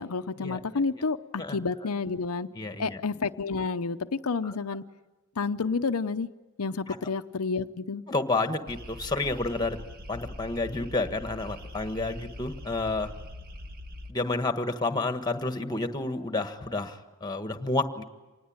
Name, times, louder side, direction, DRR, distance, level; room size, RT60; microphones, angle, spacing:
voice 1, 0.0-2.5 2.8-4.8 5.4-6.3 6.6-8.0, left 4 dB, 85° left, 8 dB, 0.7 m, -30 dB
voice 2, 2.5-3.0 4.4-4.6 6.9-7.0 8.1-9.8 10.1-13.1 14.1-18.0, left 2 dB, 20° left, 8 dB, 1.5 m, -30 dB
sound 1, 8.7-14.1, left 1 dB, 45° right, 1.6 m, -42 dB
26.0 x 20.0 x 9.0 m, 1.2 s
head